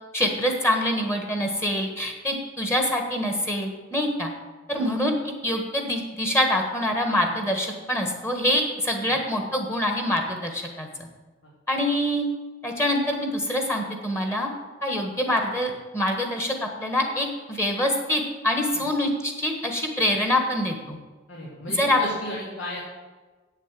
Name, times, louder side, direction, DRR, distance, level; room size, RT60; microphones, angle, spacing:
voice 1, 0.1-4.3 4.7-11.1 11.7-12.2 12.6-14.5 14.8-21.0 21.8-22.0, left 1 dB, 15° left, 3 dB, 1.3 m, -25 dB
voice 2, 21.3-22.8, left 1 dB, 85° left, -5 dB, 2.4 m, -35 dB
8.5 x 7.3 x 7.4 m, 1.3 s
head